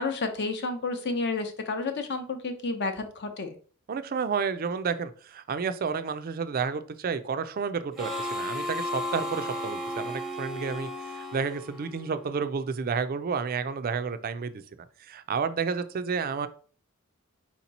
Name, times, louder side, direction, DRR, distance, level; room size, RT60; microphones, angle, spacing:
voice 1, 0.0-3.5, left 3 dB, 50° left, 7 dB, 0.7 m, -31 dB
voice 2, 3.9-14.6 15.0-16.5, right 5 dB, 45° right, 11 dB, 0.4 m, -31 dB
Harmonica, 8.0-12.4, left 1 dB, ahead, 0.6 m, -34 dB
4.5 x 2.9 x 4.0 m, 0.43 s
head